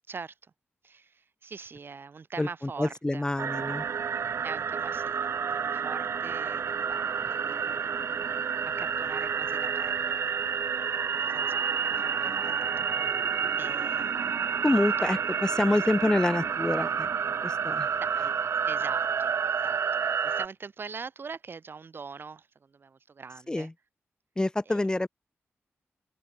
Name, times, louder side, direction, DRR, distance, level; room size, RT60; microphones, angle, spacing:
voice 1, 0.8-3.2 4.4-8.1 8.8-10.5 11.1-11.6 11.9-13.2 13.6-14.3 15.0-15.1 15.8-15.9 18.0-18.4 18.7-23.7 24.7-24.8, right 5 dB, 50° right, 1.3 m, -43 dB
voice 2, 2.4-3.9 14.6-17.1 17.4-17.9 23.5-23.7 24.4-25.1, left 2 dB, 15° left, 1.1 m, -27 dB
sound 1, 3.4-20.5, right 7 dB, 70° right, 0.6 m, -29 dB
open air
wide cardioid pair, 120°, 5 cm